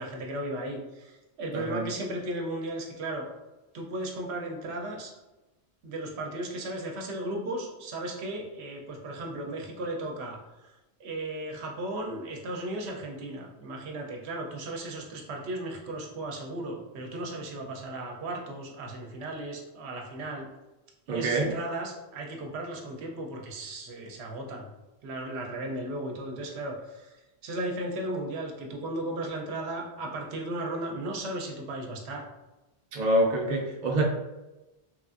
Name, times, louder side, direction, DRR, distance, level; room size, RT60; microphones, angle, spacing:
voice 1, 0.0-3.3 3.7-5.1 5.8-10.4 11.0-20.5 21.1-24.7 25.0-27.1 27.4-32.3, right 1 dB, 80° right, 1 dB, 0.8 m, -35 dB
voice 2, 1.5-1.9 21.1-21.6 32.9-34.0, right 1 dB, 50° right, -1 dB, 0.6 m, -26 dB
3.2 x 2.4 x 2.4 m, 1.0 s
omnidirectional pair, 1.1 m